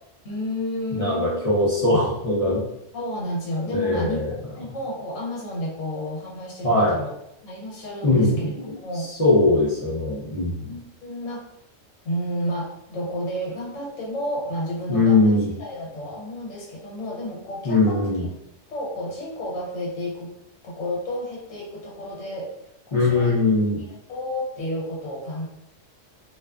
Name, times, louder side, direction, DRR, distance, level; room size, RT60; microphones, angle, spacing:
voice 1, 0.2-1.4 2.9-4.2 4.6-7.1 7.4-8.5 8.8-9.1 10.7-11.4 12.0-18.1 18.7-20.3 20.6-22.5 22.9-23.4 23.7-25.5, left 1 dB, 75° left, -3 dB, 1.0 m, -31 dB
voice 2, 0.9-2.6 3.7-4.3 6.6-7.0 8.0-10.7 14.9-15.5 17.6-18.3 22.9-23.8, left 2 dB, 45° left, -8 dB, 0.4 m, -21 dB
2.5 x 2.3 x 2.2 m, 0.79 s
omnidirectional pair, 1.3 m